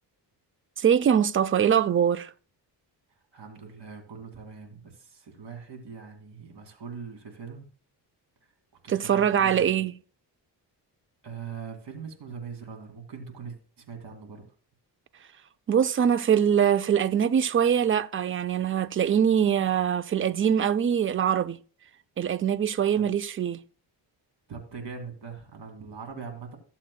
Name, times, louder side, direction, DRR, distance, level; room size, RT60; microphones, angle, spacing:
voice 1, 0.8-2.3 8.9-9.9 15.7-21.6 22.2-23.6, right 8 dB, 30° right, 0.4 m, -23 dB
voice 2, 3.3-7.7 8.8-9.8 11.2-14.5 22.9-23.1 24.5-26.6, right 6 dB, 65° right, 2.4 m, -41 dB
14.0 x 7.2 x 2.2 m
cardioid pair, 85°, 45 cm